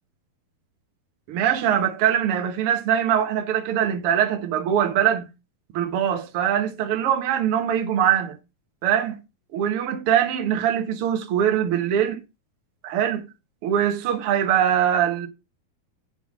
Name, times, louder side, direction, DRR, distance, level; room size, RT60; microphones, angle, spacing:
voice 1, 1.3-5.3 5.7-8.4 8.8-9.2 9.5-12.2 12.8-13.3 13.6-15.3, right 9 dB, 70° right, 1.3 m, -22 dB
6.0 x 5.7 x 6.2 m
omnidirectional pair, 4.5 m